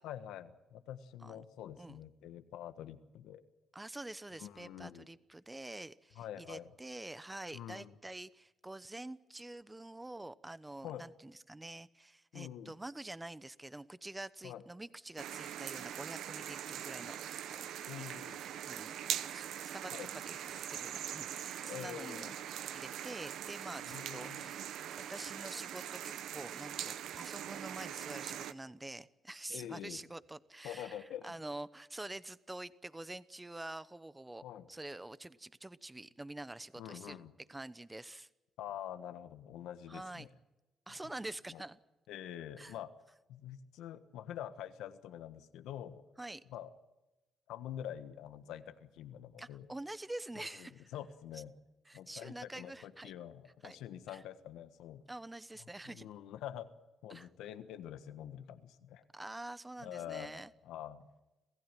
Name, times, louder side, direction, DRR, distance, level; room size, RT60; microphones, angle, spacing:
voice 1, 0.0-3.4 4.4-5.1 6.1-6.7 7.5-7.9 10.8-11.1 12.3-12.7 14.4-14.6 17.8-18.4 19.9-20.1 21.6-22.3 23.8-24.5 29.5-30.0 30.6-31.3 34.4-34.7 36.8-37.3 38.6-40.3 41.5-41.6 42.1-42.9 43.3-46.0 46.5-46.7 47.5-49.7 50.6-51.5 51.9-55.0 55.8-56.7 57.0-59.0 59.8-61.1, left 10 dB, 90° left, 10 dB, 1.4 m, -46 dB
voice 2, 3.7-17.2 17.4-17.6 18.2-19.4 19.7-22.3 22.7-24.7 25.1-34.4 34.7-37.2 37.5-38.3 39.9-40.3 40.9-41.8 42.6-42.8 46.2-46.4 49.4-50.9 51.3-51.4 51.9-53.1 53.6-53.8 54.1-54.2 55.1-56.1 57.1-57.3 59.1-60.5, right 2 dB, 15° right, 15 dB, 0.9 m, -47 dB
sound 1, 15.2-28.5, right 10 dB, 80° right, 1.0 m, -42 dB
27.5 x 15.5 x 9.2 m, 1.1 s
cardioid pair, 90°, 0 cm